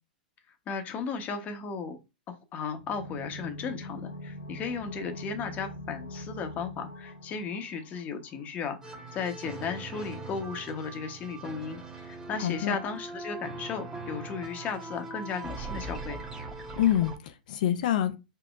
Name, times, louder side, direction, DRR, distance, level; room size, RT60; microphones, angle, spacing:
voice 1, 0.7-2.0 2.3-16.2, left 5 dB, 30° left, 0.9 m, -35 dB
sound 1, 2.7-8.4 8.7-8.8, left 1 dB, 80° left, 1.2 m, -43 dB
sound 2, 8.8-17.2, right 2 dB, 15° right, 1.1 m, -41 dB
voice 2, 12.4-12.8 16.8-18.2, left 11 dB, 60° left, 0.5 m, -26 dB
5.0 x 2.8 x 2.4 m
figure-of-eight pair, 95°, 5 cm